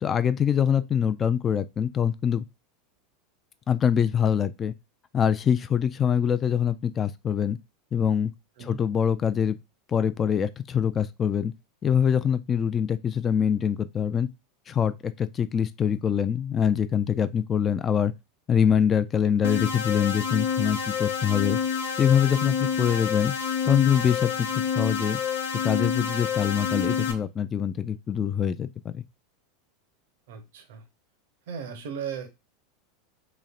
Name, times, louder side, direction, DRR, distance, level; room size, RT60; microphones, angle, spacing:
voice 1, 0.0-2.4 3.7-4.7 5.1-7.6 7.9-8.3 8.6-9.6 9.9-11.5 11.8-14.3 14.7-18.1 18.5-21.6 22.0-23.3 23.7-25.2 25.6-29.0, left 8 dB, 30° left, 0.3 m, -24 dB
sound 1, 19.4-27.1, left 7 dB, 75° left, 0.9 m, -28 dB
voice 2, 30.3-30.8 31.5-32.3, right 7 dB, 70° right, 0.7 m, -36 dB
4.0 x 3.1 x 2.3 m
hypercardioid pair, 90°, 0 cm